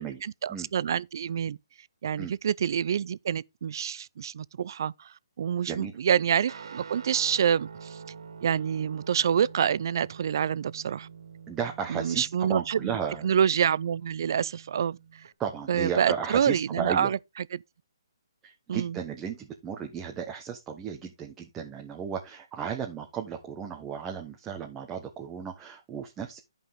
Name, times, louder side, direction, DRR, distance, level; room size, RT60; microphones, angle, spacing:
voice 1, 0.2-1.6 2.0-8.0 8.4-11.1 11.9-12.9 13.2-15.2 15.7-17.6 18.7-19.0, right 8 dB, 55° right, 0.4 m, -27 dB
Guitar, 6.5-15.3, right 6 dB, 70° right, 2.1 m, -47 dB
voice 2, 11.5-13.2 15.4-17.1 18.4-26.4, right 7 dB, 15° right, 1.1 m, -34 dB
11.5 x 5.4 x 3.6 m
hypercardioid pair, 155°, 2 cm